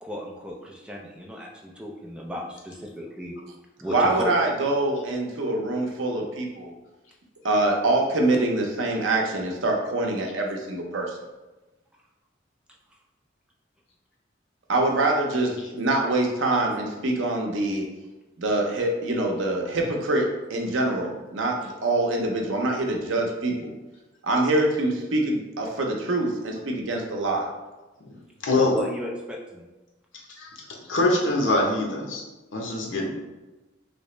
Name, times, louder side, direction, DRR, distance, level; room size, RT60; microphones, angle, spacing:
voice 1, 0.0-3.3 3.8-4.3 28.6-29.7 32.9-33.0, left 1 dB, 5° right, -2 dB, 0.4 m, -34 dB
voice 2, 3.9-6.7 7.4-11.2 14.7-17.8 18.4-23.7 24.2-27.5, right 2 dB, 90° right, 1 dB, 0.7 m, -25 dB
voice 3, 28.4-28.7 30.4-30.5 30.9-32.2 32.5-33.1, left 2 dB, 85° left, -1 dB, 0.8 m, -23 dB
3.2 x 2.9 x 3.1 m, 1.1 s
head